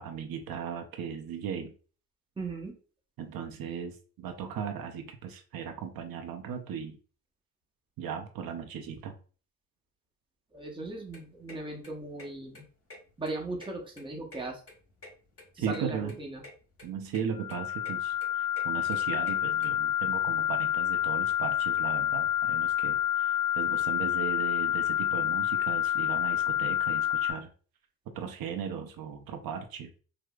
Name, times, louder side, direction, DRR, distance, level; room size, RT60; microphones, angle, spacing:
voice 1, 0.0-1.7 3.2-7.0 8.0-9.1 15.6-16.2 16.8-27.5 28.1-29.9, right 7 dB, 70° right, 4 dB, 0.6 m, -37 dB
voice 2, 2.4-2.8 10.5-12.6 13.2-14.6 15.5-16.4, right 2 dB, 15° right, 0 dB, 0.8 m, -38 dB
sound 1, 10.9-19.7, left 2 dB, 40° left, 1.5 m, -51 dB
sound 2, 17.4-27.3, left 11 dB, 60° left, 0.6 m, -28 dB
4.7 x 2.0 x 2.3 m, 0.39 s
cardioid pair, 120°, 37 cm